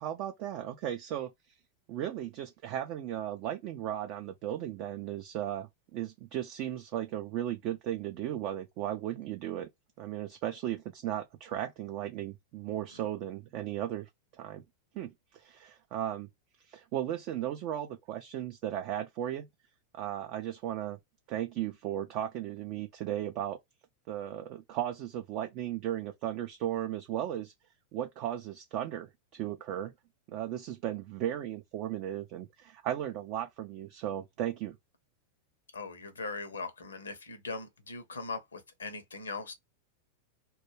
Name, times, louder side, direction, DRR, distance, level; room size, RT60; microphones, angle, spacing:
voice 1, 0.0-1.6 1.9-9.7 10.0-14.1 14.4-14.6 14.9-16.3 16.6-19.5 19.9-21.0 21.3-23.6 24.1-27.5 27.9-29.9 30.3-34.8, right 11 dB, 40° right, 0.4 m, -36 dB
voice 2, 35.7-39.5, left 3 dB, 70° left, 0.6 m, -40 dB
2.3 x 2.1 x 3.1 m
figure-of-eight pair, 90°, 0 cm